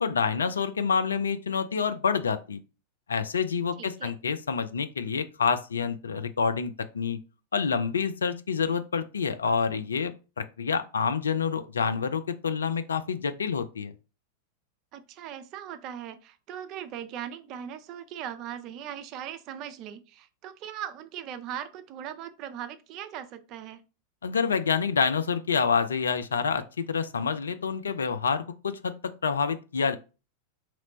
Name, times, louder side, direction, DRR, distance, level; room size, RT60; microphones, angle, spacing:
voice 1, 0.0-2.6 3.1-7.2 7.5-13.9 24.2-28.9 29.2-30.0, left 6 dB, 70° left, 0.3 m, -27 dB
voice 2, 3.8-4.2 14.9-23.8, right 10 dB, 40° right, 0.4 m, -39 dB
3.0 x 2.1 x 3.8 m
figure-of-eight pair, 90°, 0 cm